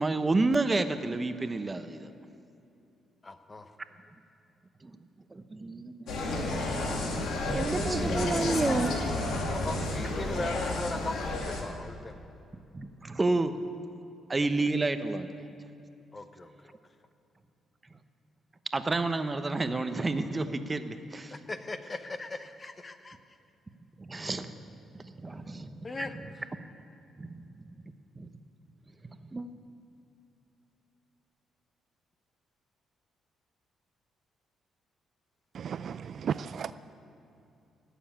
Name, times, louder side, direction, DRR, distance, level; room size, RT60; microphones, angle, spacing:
voice 1, 0.0-2.1 4.8-4.9 5.3-6.7 7.1-8.9 9.3-9.4 12.7-13.5 14.3-15.3 18.7-21.3 24.0-26.1 27.2-27.4 28.2-28.3 29.0-29.5, right 3 dB, 25° right, 9 dB, 0.8 m, -30 dB
voice 2, 3.2-3.8 9.5-12.2 16.1-16.7 21.3-23.2 25.8-26.4, left 2 dB, 25° left, 9 dB, 0.9 m, -38 dB
Insect, 6.1-11.6, left 2 dB, 75° left, 2.2 m, -31 dB
voice 3, 35.5-36.7, right 7 dB, 55° right, 14 dB, 0.3 m, -34 dB
17.5 x 7.1 x 8.7 m, 2.7 s
cardioid pair, 90°, 0 cm